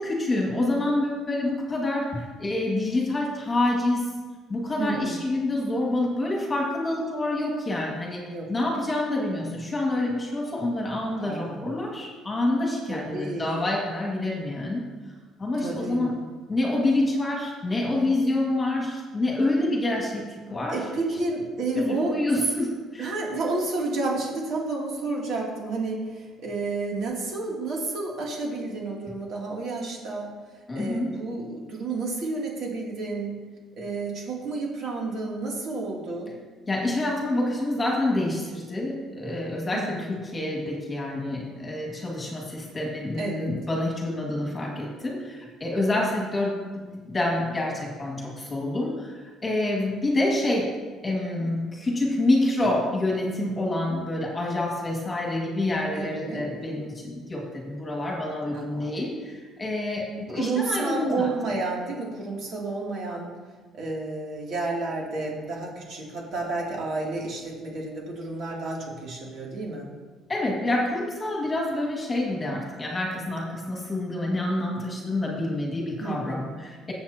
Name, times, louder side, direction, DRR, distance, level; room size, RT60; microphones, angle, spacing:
voice 1, 0.0-4.1 4.5-8.2 8.5-14.9 15.4-16.2 16.5-20.8 21.7-23.1 30.7-31.1 36.7-50.7 51.0-61.3 70.3-76.9, left 2 dB, 15° left, -2 dB, 2.1 m, -27 dB
voice 2, 4.8-5.2 8.3-8.5 11.2-11.7 12.9-13.6 15.6-16.1 20.7-22.1 23.0-30.3 30.7-33.3 33.8-36.3 39.7-40.2 43.2-43.5 55.9-56.5 58.5-59.0 60.3-63.3 63.8-69.9 76.0-76.5, right 3 dB, 50° right, -3 dB, 2.8 m, -31 dB
19.5 x 8.1 x 2.9 m, 1.4 s
cardioid pair, 160°, 0 cm